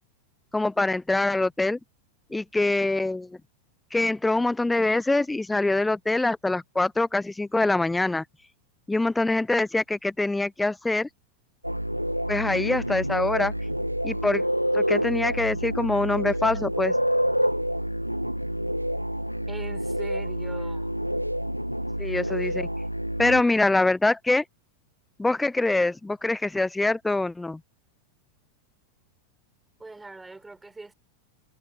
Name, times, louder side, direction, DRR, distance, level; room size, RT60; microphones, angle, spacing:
voice 1, 0.5-1.8 2.3-3.3 3.9-8.2 8.9-11.1 12.3-13.5 14.0-14.4 14.7-17.0 22.0-22.7 23.2-24.4 25.2-27.6, left 2 dB, 5° left, 0.6 m, -24 dB
sound 1, 11.6-23.4, equal, 90° right, 1.9 m, -28 dB
voice 2, 19.5-20.9 29.8-30.9, right 3 dB, 10° right, 4.9 m, -41 dB
figure-of-eight pair, 90°, 0 cm